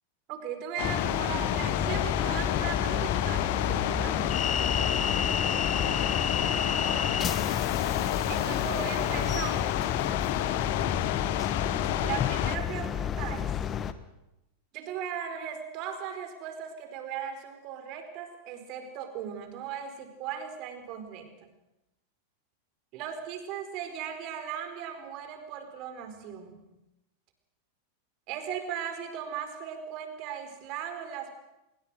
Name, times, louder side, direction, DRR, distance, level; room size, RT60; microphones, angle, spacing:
voice 1, 0.3-4.5 5.7-6.2 8.3-9.6 12.0-13.6 14.7-21.3 22.9-26.6 28.3-31.3, right 8 dB, 40° right, 8 dB, 4.8 m, -38 dB
sound 1, 0.8-12.6, left 14 dB, 50° left, 1.4 m, -30 dB
sound 2, 0.8-13.9, left 7 dB, 25° left, 1.4 m, -30 dB
26.5 x 23.0 x 6.5 m, 0.93 s
figure-of-eight pair, 90°, 0 cm